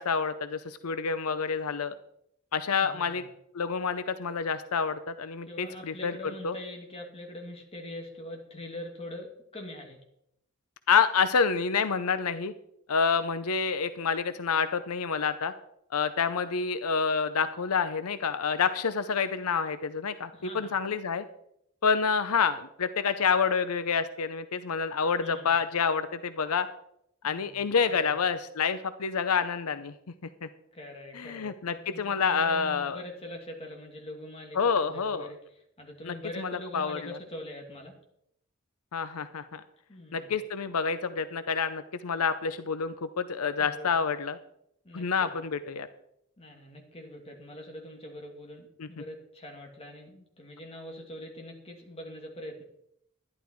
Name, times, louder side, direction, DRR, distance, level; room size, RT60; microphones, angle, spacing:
voice 1, 0.0-1.9 2.5-3.2 3.5-6.2 6.4-6.5 10.9-12.5 12.9-15.5 15.9-21.2 21.8-26.7 27.2-29.9 30.4-30.5 31.1-33.0 34.5-35.3 36.0-37.0 38.9-39.6 40.1-44.4 44.9-45.9 48.8-48.9, left 5 dB, 85° left, 12 dB, 0.6 m, -28 dB
voice 2, 2.7-3.3 5.5-10.0 20.3-20.7 25.2-25.5 27.2-28.1 30.7-35.4 35.8-38.0 39.9-40.3 43.6-43.9 44.8-45.3 46.4-52.6, left 1 dB, 25° left, 1 dB, 2.4 m, -43 dB
11.5 x 11.0 x 4.6 m, 0.75 s
head